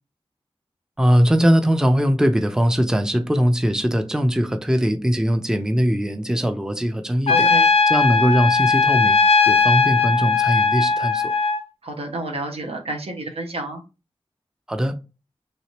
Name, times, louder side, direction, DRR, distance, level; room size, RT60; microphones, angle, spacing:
voice 1, 1.0-7.5 7.9-9.2 9.5-11.3 14.7-15.0, equal, 5° right, 0.5 m, -20 dB
Trumpet, 7.3-11.6, left 4 dB, 75° left, 0.4 m, -18 dB
voice 2, 7.3-7.7 11.8-13.8, right 2 dB, 80° right, 0.8 m, -30 dB
3.2 x 2.8 x 2.9 m
wide cardioid pair, 45°, 10 cm